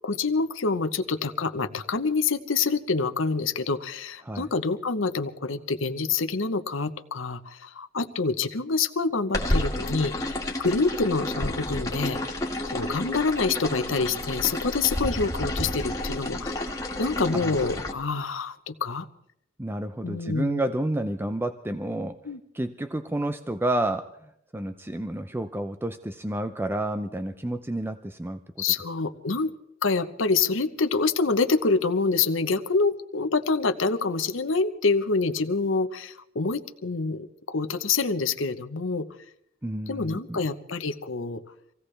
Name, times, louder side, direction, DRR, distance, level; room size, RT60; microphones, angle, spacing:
voice 1, 0.0-12.2 12.7-16.6 17.0-19.1 20.0-20.6 22.2-22.4 28.6-29.5 29.8-39.0 39.9-41.4, left 4 dB, 85° left, 9 dB, 1.0 m, -26 dB
sound 1, 9.3-17.9, left 1 dB, 15° left, 1.9 m, -30 dB
voice 2, 19.6-22.2 22.5-28.6 39.6-40.4, right 1 dB, 10° right, 9 dB, 0.5 m, -30 dB
26.0 x 16.5 x 3.3 m, 0.75 s
head